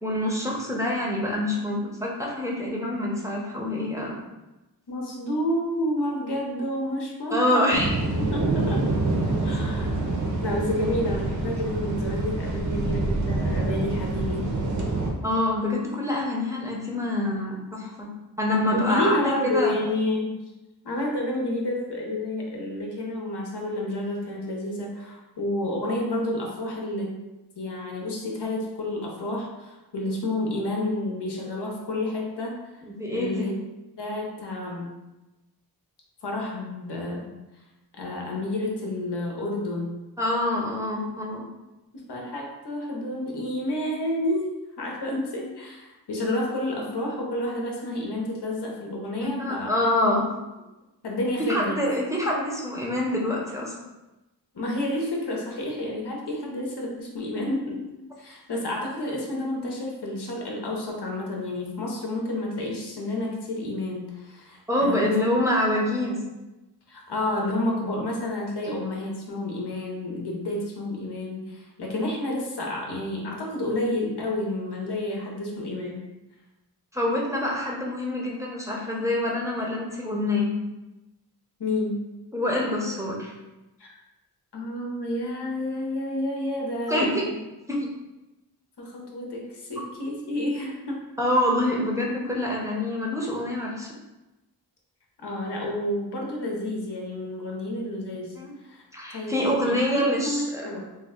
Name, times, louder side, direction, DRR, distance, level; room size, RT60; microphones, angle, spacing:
voice 1, 0.0-4.2 7.3-8.0 15.2-18.1 18.4-19.8 33.0-33.5 40.2-41.4 49.2-50.3 51.5-53.7 64.7-66.2 76.9-80.5 82.3-83.3 86.9-87.2 87.7-87.9 91.2-93.9 98.3-98.5 98.9-100.7, left 1 dB, 10° right, -4 dB, 0.6 m, -26 dB
voice 2, 4.9-7.8 8.2-8.8 9.4-14.4 18.7-20.4 20.8-27.1 27.6-32.6 33.1-33.5 34.0-35.0 36.2-37.3 38.0-39.9 41.9-44.5 44.8-49.7 51.0-51.7 54.5-57.8 58.2-65.1 66.9-76.0 81.6-82.0 83.8-83.9 84.5-87.4 88.8-91.0 95.2-98.4 98.6-98.8 99.1-100.9, left 1 dB, 80° left, -1 dB, 0.8 m, -30 dB
sound 1, 7.7-15.1, right 2 dB, 50° right, 0.6 m, -26 dB
3.1 x 2.2 x 3.6 m, 1.0 s
wide cardioid pair, 90°, 40 cm